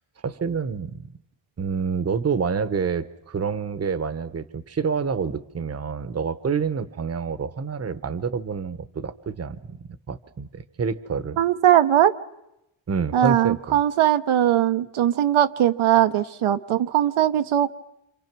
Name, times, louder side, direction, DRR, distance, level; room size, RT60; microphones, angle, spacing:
voice 1, 0.2-1.1 1.6-11.4 12.9-13.8, right 5 dB, 30° right, 14 dB, 1.0 m, -28 dB
voice 2, 11.4-12.2 13.1-17.7, right 11 dB, 80° right, 10 dB, 1.0 m, -20 dB
27.5 x 27.0 x 6.1 m, 0.87 s
wide cardioid pair, 140°, 48 cm